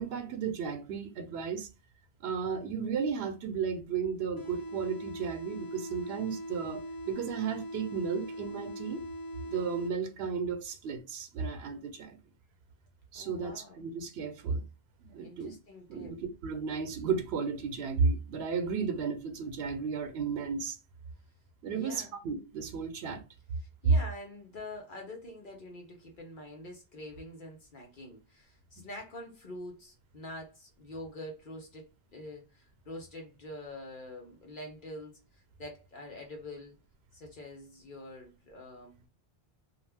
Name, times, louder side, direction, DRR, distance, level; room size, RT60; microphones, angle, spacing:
voice 1, 0.0-1.7 2.2-9.0 9.5-12.2 13.1-14.7 15.0-15.6 15.9-16.2 16.4-20.8 21.6-23.2, right 5 dB, 85° right, 0.8 m, -34 dB
sound 1, 4.4-10.3, equal, 30° left, 0.4 m, -41 dB
voice 2, 13.1-13.8 15.2-16.1 21.7-22.1 23.6-36.8 37.1-39.0, left 1 dB, 55° left, 0.8 m, -46 dB
2.4 x 2.2 x 3.3 m
omnidirectional pair, 1.0 m